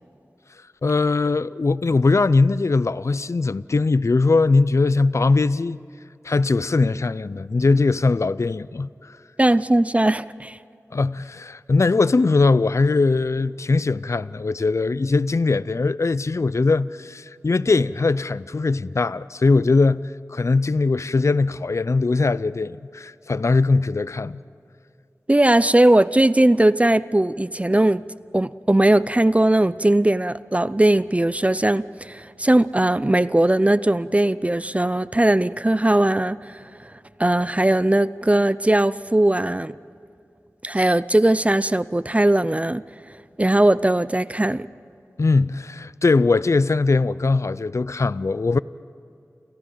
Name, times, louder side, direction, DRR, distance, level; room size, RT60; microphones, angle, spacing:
voice 1, 0.8-5.8 6.2-9.2 10.9-24.4 45.2-48.6, left 3 dB, 60° left, 0.4 m, -20 dB
voice 2, 9.4-10.6 25.3-28.0 28.3-36.9 37.2-39.7 40.6-42.8 43.4-44.7, right 1 dB, 25° right, 0.4 m, -19 dB
29.5 x 27.5 x 3.9 m
wide cardioid pair, 50°, 6 cm